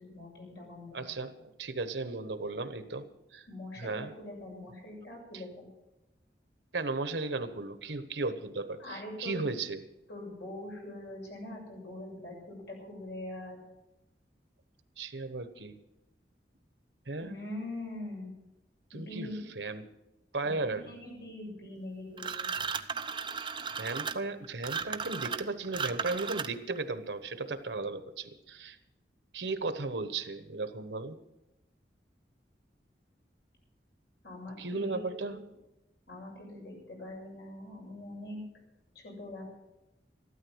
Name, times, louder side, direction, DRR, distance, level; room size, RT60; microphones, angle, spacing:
voice 1, 0.0-1.1 3.5-5.7 8.8-9.5 10.1-13.6 17.2-18.3 18.9-19.4 20.4-22.5 34.2-35.4 36.1-38.4 39.0-39.4, left 1 dB, 70° left, -2 dB, 7.3 m, -43 dB
voice 2, 0.9-3.1 3.3-3.4 3.8-4.1 5.3-5.4 6.7-9.8 15.0-15.8 17.1-17.3 18.9-19.3 19.5-19.9 20.3-21.0 23.8-28.8 29.3-31.2 34.6-35.4, right 3 dB, 85° right, 11 dB, 1.2 m, -35 dB
sound 1, 22.2-26.8, right 6 dB, 25° right, 0.6 m, -35 dB
14.0 x 12.5 x 6.3 m, 0.94 s
head